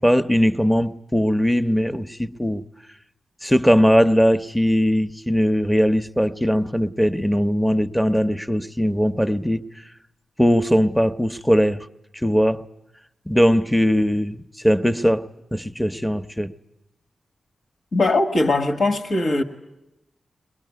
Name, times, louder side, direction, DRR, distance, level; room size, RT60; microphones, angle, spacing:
voice 1, 0.0-2.6 3.4-9.6 10.4-11.8 12.2-12.6 13.3-16.5, equal, ahead, 0.9 m, -20 dB
voice 2, 17.9-19.4, left 2 dB, 65° left, 1.7 m, -20 dB
21.5 x 21.5 x 9.6 m
cardioid pair, 50°, 0 cm